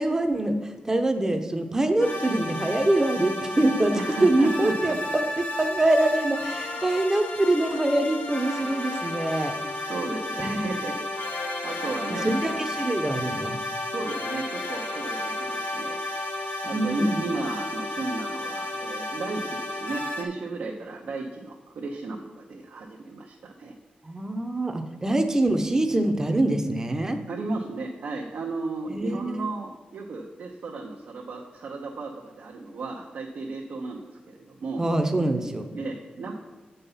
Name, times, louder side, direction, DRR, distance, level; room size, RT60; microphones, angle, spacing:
voice 1, 0.0-5.2 5.6-9.5 10.4-10.6 12.1-13.6 16.7-17.2 24.0-27.2 28.9-29.5 34.8-35.7, right 1 dB, 20° right, 7 dB, 0.7 m, -24 dB
sound 1, 2.0-20.2, left 1 dB, 80° left, 1.2 m, -32 dB
voice 2, 3.9-5.0 9.9-11.0 11.3-12.3 13.9-16.0 16.6-23.7 27.3-34.8 35.7-36.3, right 3 dB, 80° right, 0 dB, 0.8 m, -34 dB
7.9 x 5.5 x 5.6 m, 1.3 s
wide cardioid pair, 150°, 3 cm